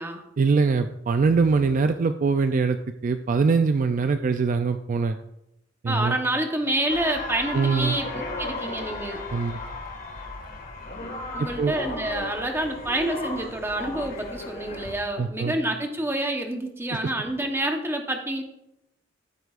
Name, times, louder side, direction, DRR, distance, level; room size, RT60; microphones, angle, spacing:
voice 1, 0.4-2.8 3.0-5.2 5.8-6.2 7.5-8.0 9.3-9.6 11.4-11.7 15.2-15.5, right 4 dB, 45° right, 8 dB, 0.4 m, -22 dB
voice 2, 5.9-9.2 11.3-18.4, right 1 dB, 15° right, 4 dB, 1.0 m, -28 dB
sound 1, 6.9-15.0, left 2 dB, 50° left, 1.8 m, -35 dB
14.0 x 7.9 x 2.5 m, 0.86 s
head